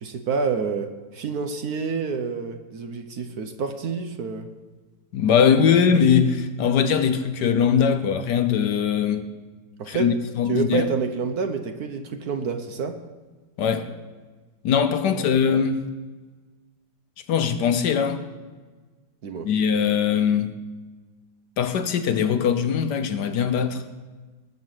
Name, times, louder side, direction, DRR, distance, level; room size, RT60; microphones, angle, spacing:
voice 1, 0.0-4.5 5.6-5.7 9.8-10.2 10.5-13.0 15.0-15.3 19.2-19.5, right 5 dB, 60° right, 1.2 m, -28 dB
voice 2, 5.1-9.3 9.9-10.9 13.6-13.9 14.6-15.9 17.3-18.2 19.4-20.5 21.6-23.8, left 7 dB, 65° left, 1.3 m, -21 dB
19.5 x 6.6 x 7.6 m
omnidirectional pair, 2.1 m